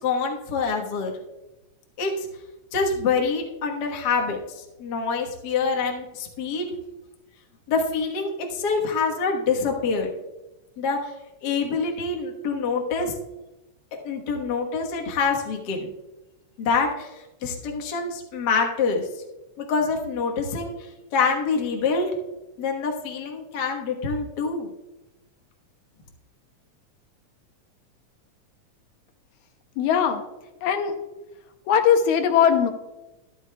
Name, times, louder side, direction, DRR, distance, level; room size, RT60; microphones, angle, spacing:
voice 1, 0.0-1.1 2.0-2.3 2.7-4.4 4.8-6.7 7.7-10.1 10.8-11.1 11.4-13.1 14.0-15.9 16.6-17.1 17.4-19.1 19.6-20.7 21.1-22.1 22.6-24.7, left 4 dB, 50° left, 1 dB, 1.4 m, -25 dB
voice 2, 29.8-30.2 30.6-31.0 31.7-32.7, left 8 dB, 80° left, 6 dB, 2.1 m, -20 dB
13.0 x 11.5 x 2.3 m, 1.0 s
omnidirectional pair, 3.4 m